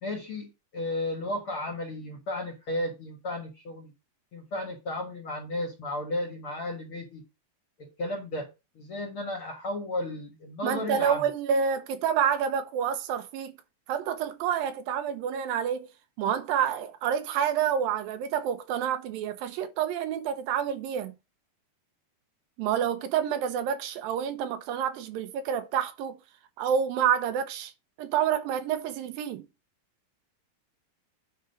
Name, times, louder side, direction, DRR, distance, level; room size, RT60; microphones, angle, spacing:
voice 1, 0.0-3.9 4.3-7.2 7.8-8.5 8.8-11.2, left 1 dB, 55° left, 1.6 m, -34 dB
voice 2, 10.6-13.6 13.9-15.9 16.2-21.1 22.6-26.2 26.6-27.7 28.0-29.5, right 8 dB, 80° right, 2.6 m, -28 dB
9.5 x 3.9 x 5.2 m
omnidirectional pair, 4.1 m